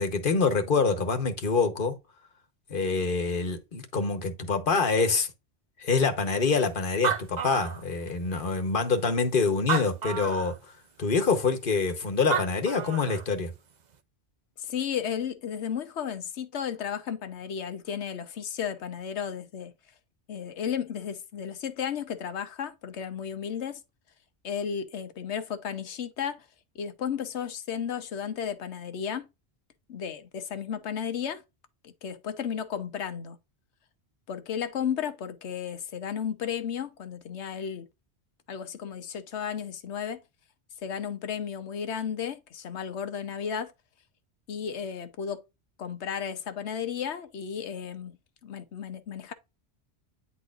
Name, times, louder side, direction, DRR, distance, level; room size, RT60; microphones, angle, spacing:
voice 1, 0.0-1.9 2.7-5.3 5.8-10.5 11.0-13.5, left 4 dB, 55° left, 1.3 m, -26 dB
Animal, 6.6-6.7 6.9-8.3 8.9-9.0 9.6-10.6 12.0-12.1 12.3-13.3, right 7 dB, 45° right, 0.7 m, -31 dB
voice 2, 14.6-19.7 20.3-23.8 24.4-26.5 26.7-29.3 29.9-31.4 31.8-33.4 34.3-37.9 38.5-40.2 40.8-43.7 44.5-45.4 45.8-48.2 48.4-49.3, left 8 dB, 90° left, 1.1 m, -33 dB
9.5 x 4.2 x 2.5 m
omnidirectional pair, 1.1 m